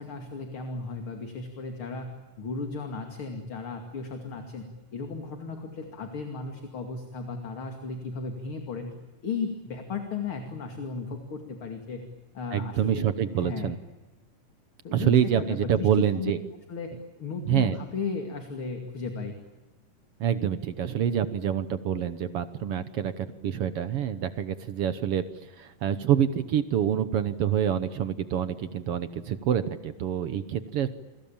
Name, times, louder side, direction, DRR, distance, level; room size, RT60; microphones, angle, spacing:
voice 1, 0.0-2.1 2.4-4.7 4.9-8.9 9.2-12.1 12.3-13.1 13.4-13.7 14.8-16.3 16.7-16.9 17.2-19.3, left 4 dB, 40° left, 5 dB, 3.0 m, -35 dB
voice 2, 12.5-13.8 14.9-16.4 17.5-17.8 20.2-25.2 25.5-30.9, right 9 dB, 65° right, 12 dB, 1.5 m, -26 dB
29.0 x 23.0 x 8.7 m, 1.2 s
omnidirectional pair, 3.8 m